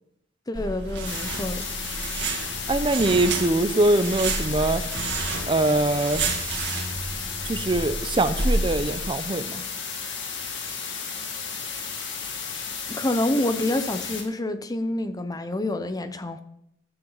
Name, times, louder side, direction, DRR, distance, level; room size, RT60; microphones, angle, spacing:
voice 1, 0.5-1.7 12.9-16.4, left 1 dB, 20° left, 0.7 m, -27 dB
sound 1, 0.5-9.1, right 3 dB, 60° right, 2.5 m, -30 dB
sound 2, 1.0-14.2, left 6 dB, 65° left, 2.2 m, -33 dB
voice 2, 2.7-4.8 5.5-6.2 7.4-9.6, right 2 dB, 25° right, 0.6 m, -23 dB
14.5 x 12.0 x 4.0 m
head